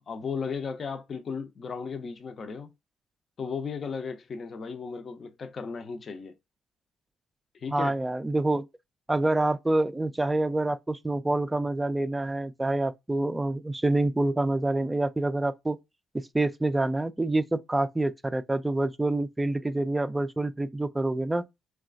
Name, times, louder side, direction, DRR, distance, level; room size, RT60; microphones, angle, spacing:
voice 1, 0.1-2.7 3.4-6.3 7.6-8.0, left 5 dB, 50° left, 0.5 m, -35 dB
voice 2, 7.7-8.7 9.1-15.8 16.3-21.5, right 2 dB, 15° right, 0.3 m, -27 dB
3.0 x 2.3 x 2.4 m
hypercardioid pair, 50°, 0 cm